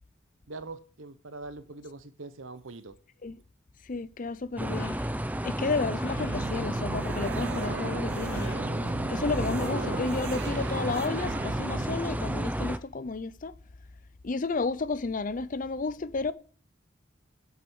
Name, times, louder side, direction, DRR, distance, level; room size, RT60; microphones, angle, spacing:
voice 1, 0.5-3.0, right 3 dB, 80° right, 1.1 m, -43 dB
voice 2, 3.9-5.0 5.4-8.5 9.1-13.5 14.2-16.3, left 3 dB, 45° left, 0.6 m, -32 dB
sound 1, 4.6-5.1 5.9-6.4 7.4-8.7 9.4-10.5 11.0-11.5, left 4 dB, 65° left, 2.7 m, -48 dB
sound 2, 4.6-12.8, right 1 dB, 10° right, 0.6 m, -32 dB
sound 3, 6.2-12.0, right 4 dB, 60° right, 0.5 m, -37 dB
10.5 x 8.4 x 6.4 m
head